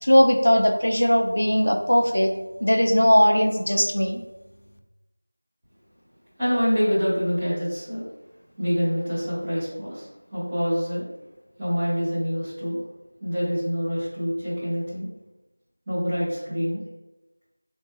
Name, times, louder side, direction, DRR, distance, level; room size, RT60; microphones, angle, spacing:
voice 1, 0.0-2.3 2.6-4.2, equal, 85° left, 3 dB, 0.5 m, -19 dB
voice 2, 6.4-8.0 8.6-11.1 11.6-12.8 13.2-15.1 15.9-16.8, equal, 5° right, -14 dB, 0.6 m, -26 dB
3.8 x 3.5 x 2.6 m, 1.0 s
figure-of-eight pair, 180°, 0 cm